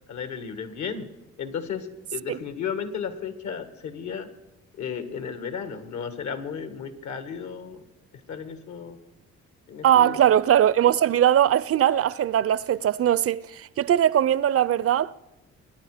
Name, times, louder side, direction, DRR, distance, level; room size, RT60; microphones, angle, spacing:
voice 1, 0.1-1.1 1.4-4.3 4.7-7.8 8.1-9.0 9.7-10.2, left 6 dB, 70° left, 2.0 m, -34 dB
voice 2, 9.8-15.1, right 10 dB, 50° right, 0.5 m, -20 dB
23.5 x 9.9 x 5.0 m
cardioid pair, 90°, 30 cm